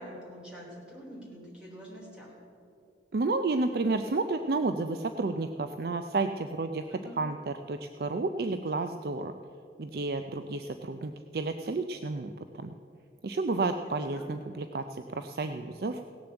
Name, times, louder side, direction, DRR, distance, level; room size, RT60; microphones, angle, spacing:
voice 1, 0.0-2.3 6.9-7.1 13.8-14.3, equal, 5° right, -5 dB, 3.7 m, -46 dB
voice 2, 3.1-6.8 7.2-9.3 9.8-12.7 13.2-16.0, right 3 dB, 55° right, 8 dB, 0.4 m, -31 dB
17.0 x 6.9 x 7.8 m, 2.5 s
head